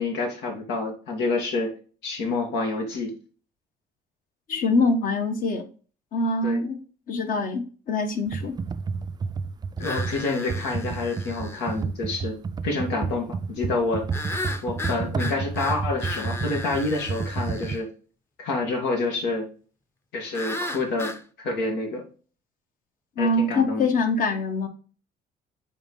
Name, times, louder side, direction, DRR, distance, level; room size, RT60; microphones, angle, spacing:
voice 1, 0.0-1.7 2.0-3.1 6.4-6.6 9.8-12.3 12.6-14.1 14.6-17.9 18.4-19.5 20.1-22.0 23.2-23.9, left 3 dB, 90° left, 2 dB, 2.1 m, -28 dB
voice 2, 4.5-5.6 6.1-6.8 7.1-8.6 23.2-24.7, left 2 dB, 55° left, 6 dB, 1.3 m, -24 dB
Computer keyboard, 8.3-17.8, right 5 dB, 25° right, 0.4 m, -30 dB
sound 1, 9.8-11.8 14.1-17.8 20.3-21.2, left 2 dB, 15° left, 0.7 m, -35 dB
6.9 x 4.3 x 3.8 m, 0.39 s
cardioid pair, 110°, 17 cm